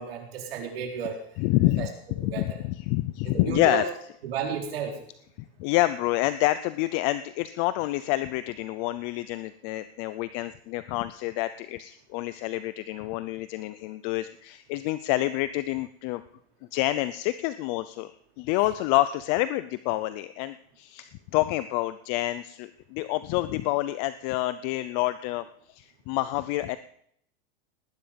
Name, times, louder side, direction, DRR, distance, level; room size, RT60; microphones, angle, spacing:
voice 1, 0.0-1.2 1.8-1.9 2.3-2.6 3.2-3.8 4.2-5.0, right 7 dB, 70° right, 2 dB, 4.3 m, -32 dB
voice 2, 1.4-1.9 2.2-3.8 5.4-16.2 16.7-26.8, left 17 dB, 35° left, 13 dB, 0.5 m, -28 dB
19.0 x 10.0 x 5.2 m, 0.69 s
supercardioid pair, 155°, 30 cm